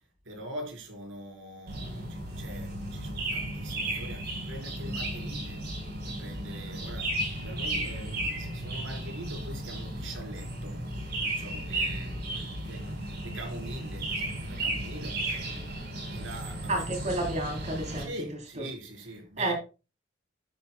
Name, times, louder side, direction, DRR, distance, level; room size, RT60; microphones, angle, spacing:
voice 1, 0.2-5.6 6.0-10.8 11.2-15.7 16.0-17.0 18.0-19.5, right 1 dB, 80° right, 4.4 m, -43 dB
sound 1, 1.7-18.0, right 1 dB, 55° right, 4.3 m, -34 dB
voice 2, 16.7-18.1 19.4-19.5, right 2 dB, 35° right, 3.4 m, -30 dB
11.5 x 11.5 x 2.3 m
head